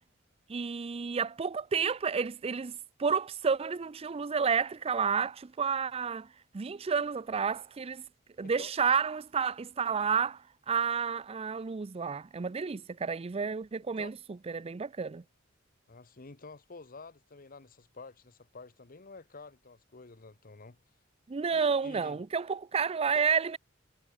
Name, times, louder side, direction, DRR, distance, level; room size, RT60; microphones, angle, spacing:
voice 1, 0.5-6.3 6.5-8.0 8.4-14.1 14.5-15.2 21.3-23.6, right 6 dB, 30° right, 0.4 m, -30 dB
voice 2, 15.9-20.8 21.5-22.2 23.1-23.3, left 3 dB, 45° left, 1.1 m, -50 dB
head